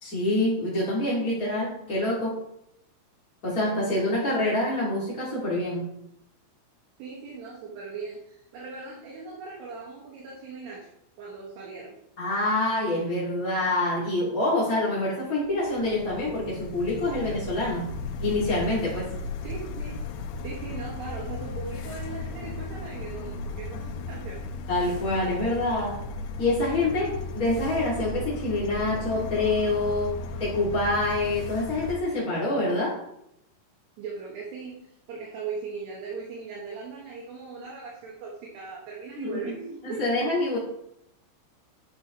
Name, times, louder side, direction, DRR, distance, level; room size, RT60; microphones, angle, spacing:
voice 1, 0.0-2.4 3.4-6.0 12.2-17.9 18.2-19.1 24.7-26.1 26.4-33.0 39.2-39.4 39.8-40.6, left 2 dB, 45° left, -7 dB, 1.1 m, -26 dB
voice 2, 7.0-10.9 11.2-12.0 19.4-20.0 20.4-24.5 34.0-40.0, right 4 dB, 65° right, -5 dB, 3.4 m, -39 dB
sound 1, 15.4-32.0, left 3 dB, 85° left, 3.4 m, -36 dB
12.0 x 6.1 x 3.0 m, 0.79 s
omnidirectional pair, 5.7 m